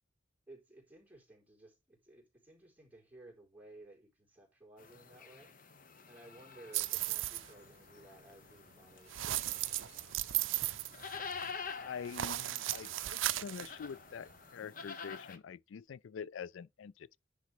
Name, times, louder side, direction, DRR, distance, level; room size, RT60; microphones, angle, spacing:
voice 1, 0.5-5.5 6.1-10.4, right 2 dB, 10° right, 4.2 m, -57 dB
sound 1, 4.8-15.4, left 5 dB, 45° left, 1.0 m, -48 dB
sound 2, 6.7-7.5 9.1-11.5 12.0-13.7, right 15 dB, 70° right, 0.5 m, -36 dB
voice 2, 11.8-17.2, left 7 dB, 70° left, 0.4 m, -45 dB
10.5 x 3.9 x 4.9 m
head